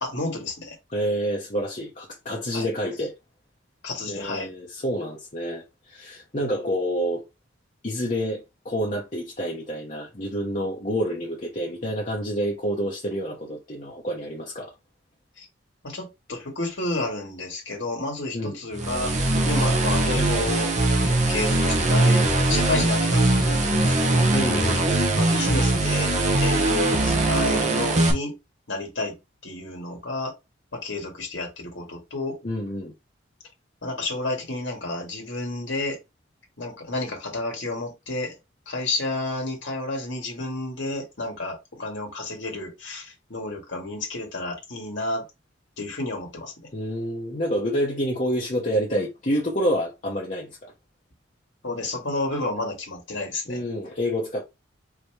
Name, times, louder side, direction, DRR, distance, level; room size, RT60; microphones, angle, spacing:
voice 1, 0.0-0.8 2.5-2.7 3.8-4.5 15.4-15.5 15.8-20.7 21.1-24.3 25.2-26.1 26.4-28.4 28.7-29.1 29.4-30.3 30.7-32.4 33.8-36.0 36.6-38.4 38.7-45.2 45.8-46.5 51.6-53.6, left 2 dB, 75° left, 1.8 m, -31 dB
voice 2, 0.9-3.2 4.1-7.2 7.8-14.7 18.3-18.6 24.3-24.8 32.4-32.9 46.7-50.7 53.5-54.4, equal, 40° left, 1.0 m, -28 dB
sound 1, 18.7-28.1, right 2 dB, 35° right, 0.9 m, -21 dB
4.8 x 3.0 x 3.3 m
head